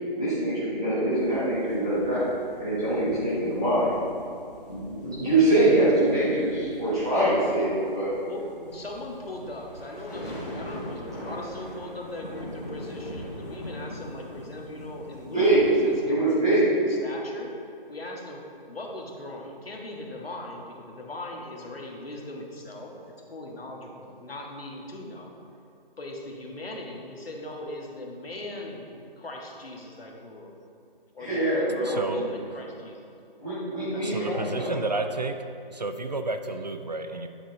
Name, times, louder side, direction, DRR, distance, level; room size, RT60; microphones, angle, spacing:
voice 1, 0.1-2.2 2.6-3.9 4.6-8.1 15.2-15.6 16.0-16.6 31.2-32.0 33.4-34.7, right 1 dB, 5° right, -16 dB, 0.7 m, -24 dB
sound 1, 1.1-16.0, equal, 20° left, 1.5 m, -42 dB
voice 2, 8.2-17.6 17.9-25.3 26.0-28.9 29.2-30.6 31.1-33.1 33.9-34.7, left 1 dB, 85° left, 0 dB, 1.6 m, -39 dB
voice 3, 31.8-32.3 34.0-35.4 35.7-37.3, right 2 dB, 45° right, 7 dB, 0.5 m, -31 dB
9.9 x 5.0 x 3.9 m, 2.5 s
figure-of-eight pair, 170°, 29 cm